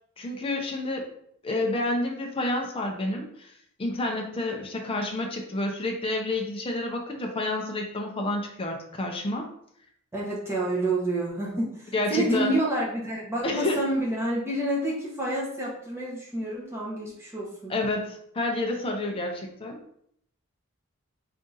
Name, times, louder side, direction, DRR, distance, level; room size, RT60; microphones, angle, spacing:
voice 1, 0.2-1.1 1.4-3.5 3.8-9.5 11.9-12.6 13.4-13.8 17.7-19.8, left 2 dB, 25° left, 1 dB, 0.5 m, -29 dB
voice 2, 10.1-17.7, right 1 dB, 10° right, -5 dB, 0.9 m, -28 dB
3.6 x 2.6 x 3.9 m, 0.69 s
head